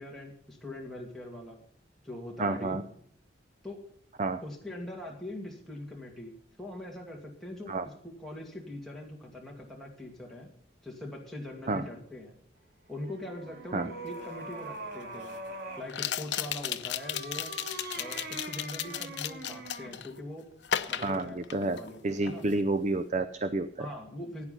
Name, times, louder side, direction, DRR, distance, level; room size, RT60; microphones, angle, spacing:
voice 1, 0.0-1.6 2.0-2.8 3.6-3.8 4.4-6.3 6.6-10.5 10.8-12.3 12.9-15.4 15.8-17.5 18.0-20.4 20.9-22.4 23.8-24.4, left 1 dB, ahead, -2 dB, 2.3 m, -42 dB
voice 2, 2.4-2.8 4.2-4.4 7.7-7.9 11.7-11.8 13.7-13.9 21.0-21.8 22.0-23.9, right 2 dB, 40° right, 11 dB, 0.6 m, -30 dB
sound 1, 12.9-15.9 16.9-20.0, right 2 dB, 60° right, 2.3 m, -42 dB
sound 2, 14.2-14.3 15.9-20.1 20.6-22.0 22.3-22.6, left 9 dB, 65° left, 0.7 m, -35 dB
16.0 x 9.6 x 5.7 m, 0.65 s
head